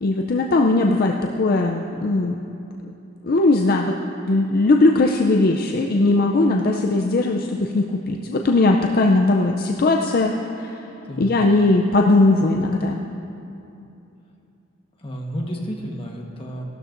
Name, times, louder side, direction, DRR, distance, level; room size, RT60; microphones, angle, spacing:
voice 1, 0.0-2.4 3.2-4.0 4.3-10.8 11.2-13.0, left 2 dB, 50° left, 2 dB, 0.4 m, -19 dB
voice 2, 11.0-11.4 15.0-16.6, equal, 30° left, 0 dB, 1.2 m, -31 dB
15.5 x 12.0 x 2.6 m, 2.7 s
head